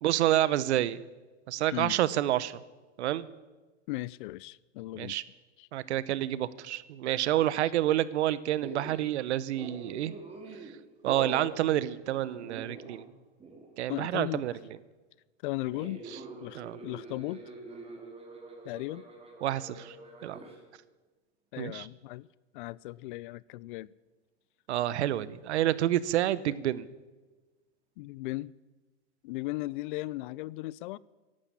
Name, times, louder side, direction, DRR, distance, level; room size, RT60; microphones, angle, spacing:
voice 1, 0.0-1.0 1.5-2.6 3.0-3.3 5.0-5.2 5.7-10.1 11.0-13.0 13.8-14.5 16.5-16.8 19.4-20.0 20.2-20.4 21.6-21.9 24.7-26.9, right 13 dB, 75° right, 0.9 m, -28 dB
voice 2, 3.9-5.2 5.6-5.7 7.6-7.7 13.9-14.6 15.4-16.0 16.4-17.4 18.6-19.0 21.5-22.3 22.5-23.9 26.5-26.6 28.0-28.5 29.2-31.0, left 19 dB, 50° left, 0.4 m, -37 dB
sound 1, 8.6-9.1 9.5-10.7 11.1-11.5 12.2-13.1 13.4-13.7 15.7-20.6, right 3 dB, 15° right, 2.9 m, -44 dB
13.0 x 11.5 x 8.5 m
hypercardioid pair, 130°, 34 cm